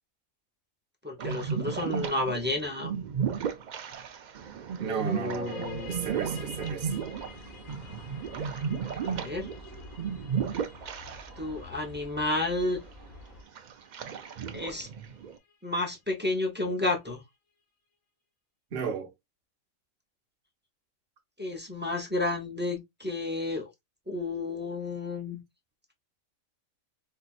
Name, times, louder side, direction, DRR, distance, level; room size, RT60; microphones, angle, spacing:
voice 1, 1.0-2.9 4.8-6.0 9.0-9.5 11.4-12.8 14.5-14.9 15.6-17.2 21.4-23.7 24.1-25.4, left 2 dB, 10° right, 0.7 m, -31 dB
musical bubbles, 1.2-11.6 11.9-12.0 12.6-13.0 13.6-15.4, right 7 dB, 75° right, 0.4 m, -34 dB
voice 2, 4.8-7.0 18.7-19.1, right 7 dB, 50° right, 1.0 m, -34 dB
sound 1, 5.5-16.8, left 6 dB, 70° left, 1.4 m, -53 dB
sound 2, 5.6-13.4, left 2 dB, 45° left, 1.4 m, -49 dB
4.3 x 2.7 x 2.4 m
omnidirectional pair, 1.4 m